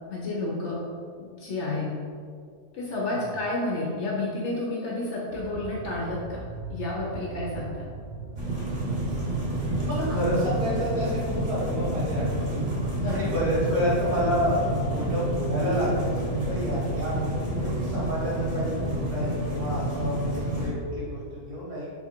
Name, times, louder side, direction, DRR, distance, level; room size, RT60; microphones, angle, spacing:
voice 1, 0.1-0.8 1.2-1.9 2.7-6.4 6.7-7.9 13.0-13.2, left 2 dB, 60° left, -4 dB, 0.8 m, -30 dB
sound 1, 5.3-21.3, right 2 dB, 65° right, 0.7 m, -41 dB
sound 2, 8.4-20.7, right 1 dB, 35° right, 0.9 m, -29 dB
voice 2, 9.8-21.9, equal, 80° right, -8 dB, 2.1 m, -29 dB
3.9 x 2.4 x 4.3 m, 2.1 s
omnidirectional pair, 1.6 m